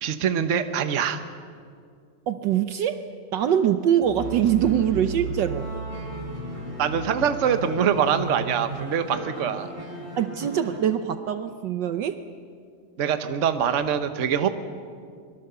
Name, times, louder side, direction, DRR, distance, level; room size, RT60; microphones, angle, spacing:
voice 1, 0.0-1.2 6.8-9.7 13.0-14.5, right 8 dB, 45° right, 9 dB, 1.2 m, -24 dB
voice 2, 2.3-3.1 3.3-5.7 10.2-12.2, right 9 dB, 65° right, 10 dB, 1.4 m, -23 dB
sound 1, 4.0-10.8, right 3 dB, 15° right, 4.3 m, -35 dB
24.5 x 23.0 x 6.9 m, 2.2 s
omnidirectional pair, 2.2 m